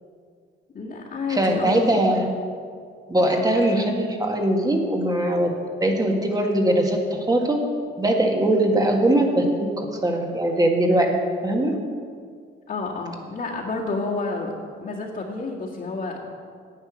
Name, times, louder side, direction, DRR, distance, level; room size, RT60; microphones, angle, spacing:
voice 1, 0.7-2.0 12.7-14.5 14.8-16.3, left 3 dB, 45° left, -6 dB, 2.0 m, -29 dB
voice 2, 1.3-2.3 3.1-7.6 8.0-11.1 11.4-11.8, right 1 dB, 15° right, 2 dB, 1.8 m, -21 dB
10.0 x 8.8 x 6.3 m, 2.1 s
cardioid pair, 95°, 21 cm